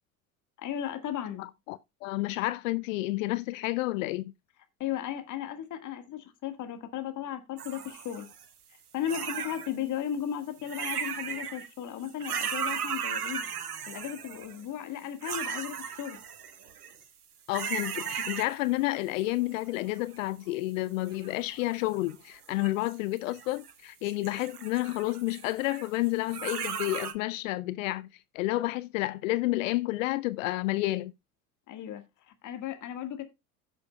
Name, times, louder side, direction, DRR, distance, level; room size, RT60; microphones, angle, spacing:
voice 1, 0.6-1.5 4.8-8.3 8.9-13.4 13.9-16.2 31.7-33.2, left 10 dB, 40° left, 1.7 m, -35 dB
voice 2, 1.4-4.3 17.5-28.1 28.3-31.1, left 19 dB, 60° left, 0.5 m, -30 dB
sound 1, 7.6-8.5 9.0-9.8 10.6-11.7 12.0-14.6 15.2-17.0 17.5-18.8 19.2-20.2 21.0-22.1 22.6-23.7 24.0-27.1, right 7 dB, 85° right, 0.9 m, -36 dB
16.0 x 6.9 x 2.3 m
figure-of-eight pair, 70°, 44 cm